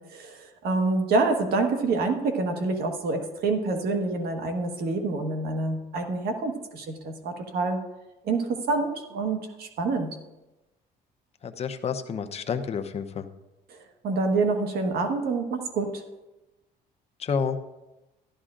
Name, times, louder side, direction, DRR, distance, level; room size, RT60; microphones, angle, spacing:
voice 1, 0.0-7.8 8.2-10.1 13.7-13.8 14.0-16.0, right 3 dB, 65° right, 4 dB, 1.4 m, -27 dB
voice 2, 11.4-13.2 17.2-17.6, left 6 dB, 40° left, 7 dB, 0.8 m, -29 dB
14.0 x 11.0 x 2.5 m, 1.0 s
cardioid pair, 110°, 17 cm